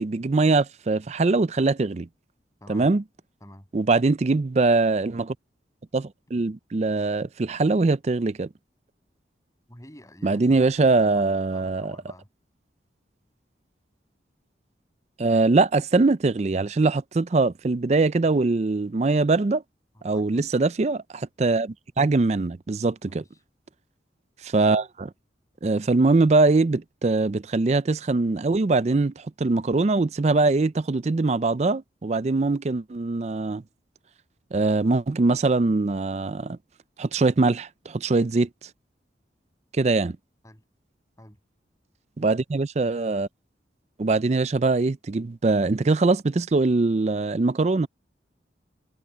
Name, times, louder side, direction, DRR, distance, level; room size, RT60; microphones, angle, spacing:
voice 1, 0.0-2.1 2.7-3.0 3.7-5.3 5.9-8.5 10.2-12.0 15.2-19.6 20.0-23.2 24.4-25.1 25.6-33.6 34.5-36.6 37.0-38.5 39.8-40.2 42.2-43.3 44.0-47.9, right 3 dB, 40° right, 0.4 m, -22 dB
voice 2, 9.7-12.3 20.1-20.5 23.1-23.3 40.4-40.6 41.2-41.4, left 1 dB, 20° left, 7.3 m, -48 dB
head